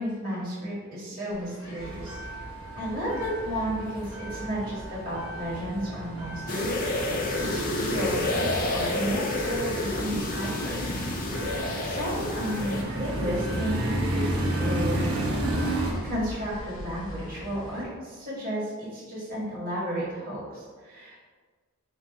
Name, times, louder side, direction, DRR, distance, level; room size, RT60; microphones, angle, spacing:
voice 1, 0.0-2.2 2.7-6.7 7.4-10.9 11.3-15.1 16.0-21.3, equal, 40° right, -8 dB, 1.5 m, -33 dB
sound 1, 1.3-17.8, equal, 65° left, 0.9 m, -44 dB
sound 2, 1.8-15.9, right 1 dB, 75° right, 0.8 m, -32 dB
sound 3, 6.5-12.8, left 2 dB, 35° left, 0.5 m, -29 dB
4.2 x 2.8 x 3.4 m, 1.5 s
head